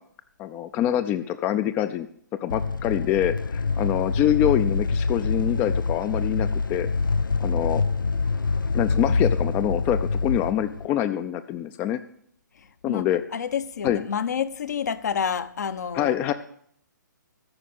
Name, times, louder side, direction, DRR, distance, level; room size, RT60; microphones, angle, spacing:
voice 1, 0.4-2.1 2.4-6.9 7.4-7.8 8.7-12.0 12.8-13.2 13.8-14.0 15.9-16.3, left 11 dB, 20° left, 0.4 m, -25 dB
sound 1, 2.5-10.9, left 4 dB, 85° left, 0.4 m, -25 dB
voice 2, 13.3-16.2, left 7 dB, 60° left, 0.9 m, -28 dB
13.5 x 5.1 x 9.3 m
figure-of-eight pair, 130°, 11 cm